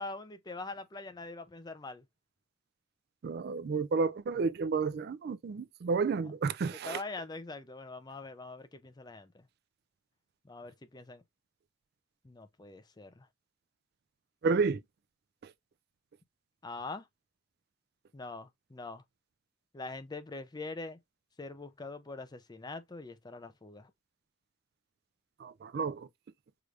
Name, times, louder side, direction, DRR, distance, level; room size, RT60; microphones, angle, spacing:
voice 1, 0.0-2.1 6.7-9.5 10.4-11.2 12.2-13.3 16.6-17.1 18.1-19.0 19.7-21.0 21.4-23.9, left 3 dB, 20° left, 0.5 m, -43 dB
voice 2, 3.2-7.0 14.4-14.8 25.4-26.1, right 4 dB, 55° right, 0.3 m, -31 dB
4.9 x 2.5 x 3.2 m
head